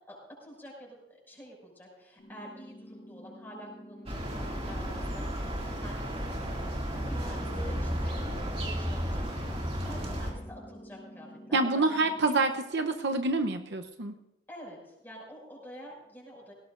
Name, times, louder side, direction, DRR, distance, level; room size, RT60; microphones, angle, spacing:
voice 1, 0.0-11.9 12.3-12.4 12.7-12.8 14.5-16.5, equal, 10° left, -4 dB, 6.2 m, -49 dB
sound 1, 2.2-12.2, equal, 50° left, 3.3 m, -49 dB
sound 2, 4.1-10.3, equal, 35° right, 2.4 m, -33 dB
voice 2, 11.5-14.1, right 3 dB, 65° right, 6 dB, 0.8 m, -27 dB
18.0 x 18.0 x 2.6 m, 0.92 s
head